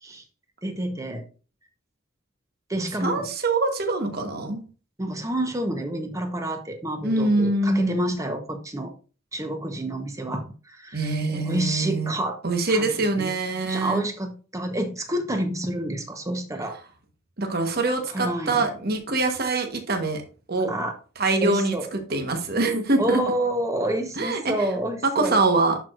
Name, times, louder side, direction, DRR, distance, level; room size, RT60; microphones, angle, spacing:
voice 1, 0.6-1.2 2.7-3.3 5.0-8.9 9.3-12.4 12.7-13.3 13.7-16.8 18.1-18.7 20.7-20.9 21.4-21.9 23.0-25.4, right 1 dB, 15° right, 5 dB, 0.9 m, -28 dB
voice 2, 2.8-4.6 7.0-8.1 10.9-12.1 12.4-14.0 17.4-20.2 20.5-20.7 21.2-23.2 24.2-24.7 25.1-25.8, right 2 dB, 50° right, 5 dB, 1.2 m, -24 dB
10.5 x 4.7 x 2.5 m, 0.36 s
head